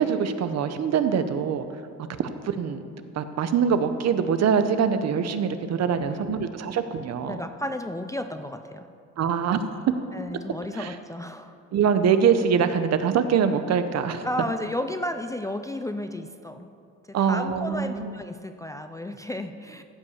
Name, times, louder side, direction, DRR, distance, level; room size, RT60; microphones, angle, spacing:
voice 1, 0.0-1.7 2.4-2.8 3.1-7.4 9.2-9.6 10.7-10.9 11.7-14.2 17.1-18.1, right 7 dB, 60° right, 10 dB, 0.8 m, -23 dB
voice 2, 5.9-6.4 7.2-8.9 10.1-11.6 14.2-16.7 17.1-19.8, left 1 dB, 10° left, 7 dB, 0.3 m, -33 dB
14.5 x 5.4 x 7.1 m, 2.5 s
cardioid pair, 135°, 30 cm